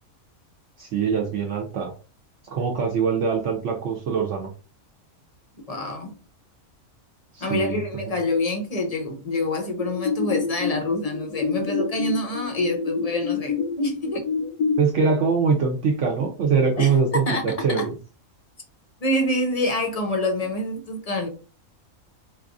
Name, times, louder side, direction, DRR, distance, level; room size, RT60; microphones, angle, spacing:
voice 1, 0.8-1.9 2.4-4.5 7.3-7.8 14.8-18.0, right 5 dB, 65° right, 0.9 m, -23 dB
voice 2, 5.7-6.2 7.4-14.3 16.8-17.9 19.0-21.3, left 1 dB, 45° left, 0.5 m, -26 dB
sound 1, 9.8-14.8, left 6 dB, 75° left, 0.9 m, -27 dB
4.6 x 2.4 x 2.5 m
omnidirectional pair, 1.5 m